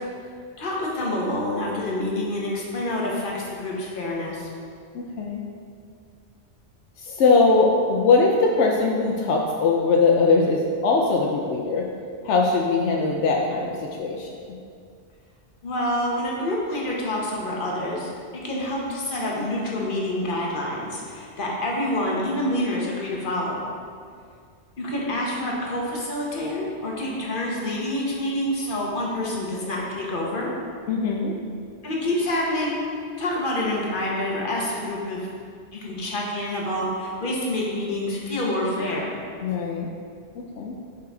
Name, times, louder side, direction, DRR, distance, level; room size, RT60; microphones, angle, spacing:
voice 1, 0.6-4.5 15.6-23.7 24.8-30.5 31.8-35.3 35.7-39.2, left 1 dB, 50° left, -3 dB, 1.3 m, -27 dB
voice 2, 4.9-5.4 7.0-11.9 12.2-14.6 30.9-31.3 39.4-39.9 40.6-40.8, left 3 dB, 80° left, 0 dB, 0.9 m, -21 dB
6.3 x 5.7 x 3.7 m, 2.2 s
omnidirectional pair, 1.2 m